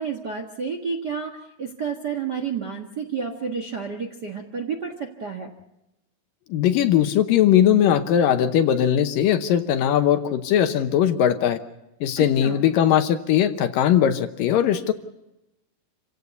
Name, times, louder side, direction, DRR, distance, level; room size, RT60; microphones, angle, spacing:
voice 1, 0.0-5.5 12.2-12.6, right 6 dB, 65° right, 5 dB, 1.0 m, -30 dB
voice 2, 6.5-11.6 12.0-14.9, left 10 dB, 75° left, 9 dB, 2.4 m, -19 dB
28.5 x 16.5 x 7.0 m, 0.92 s
omnidirectional pair, 4.5 m